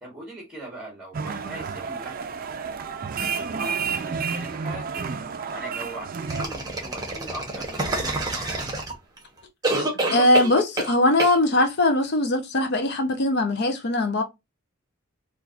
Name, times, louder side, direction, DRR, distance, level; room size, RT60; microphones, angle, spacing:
voice 1, 0.0-2.6 3.2-5.1 5.5-8.9, right 1 dB, 5° right, 1.3 m, -40 dB
sound 1, 1.1-6.5, right 5 dB, 45° right, 0.4 m, -30 dB
sound 2, 6.3-9.2 9.6-10.9 11.2-11.4, right 2 dB, 20° right, 1.0 m, -27 dB
voice 2, 10.1-14.2, left 1 dB, 55° left, 0.6 m, -21 dB
4.4 x 2.5 x 2.4 m
head